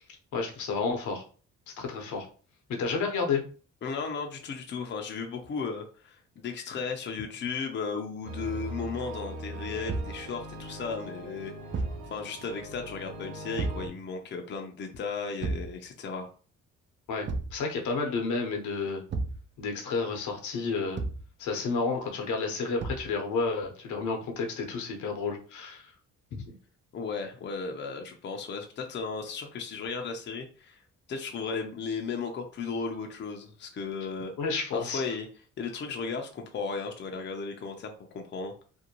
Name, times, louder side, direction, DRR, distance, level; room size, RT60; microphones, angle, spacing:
voice 1, 0.3-1.2 1.8-2.3 2.8-3.4 17.1-19.0 19.6-21.0 21.4-25.9 26.3-26.5 34.4-35.0, left 4 dB, 75° left, 2 dB, 0.8 m, -31 dB
voice 2, 3.8-11.5 12.1-16.3 26.9-30.8 31.1-34.3 34.7-35.3 35.6-38.5, left 5 dB, 40° left, 3 dB, 0.5 m, -35 dB
sound 1, 8.2-13.9, right 1 dB, 85° right, 1.2 m, -41 dB
Thump thud, 9.9-10.2 11.7-12.1 13.6-13.9 15.4-15.8 17.2-17.6 19.1-19.4 20.9-21.3 22.8-23.1, right 3 dB, 40° right, 0.4 m, -32 dB
2.6 x 2.1 x 2.9 m, 0.40 s
cardioid pair, 90°, 30 cm